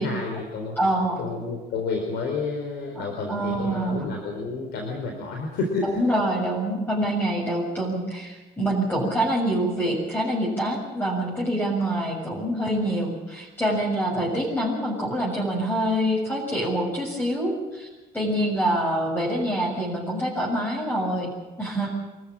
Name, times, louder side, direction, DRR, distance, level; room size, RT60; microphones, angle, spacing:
voice 1, 0.0-0.8 1.2-6.0 14.1-14.3 21.8-21.9, left 4 dB, 80° left, 2 dB, 4.2 m, -30 dB
voice 2, 0.8-1.2 2.9-3.0 3.3-4.0 5.8-17.9 18.1-21.3 21.6-21.9, right 1 dB, 10° left, -4 dB, 6.8 m, -25 dB
25.5 x 14.0 x 8.9 m, 1.2 s
cardioid pair, 110°, 17 cm